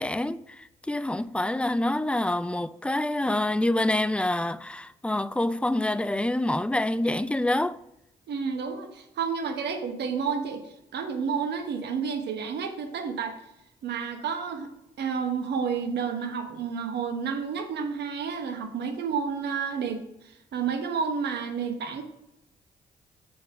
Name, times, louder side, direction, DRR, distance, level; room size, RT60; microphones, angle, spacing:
voice 1, 0.0-7.8, left 1 dB, 5° left, 0.4 m, -27 dB
voice 2, 8.3-10.6 10.9-13.3 13.8-14.7 15.0-20.0 20.5-22.0, right 6 dB, 70° right, 1.2 m, -30 dB
7.2 x 4.4 x 4.9 m
hypercardioid pair, 45°, 18 cm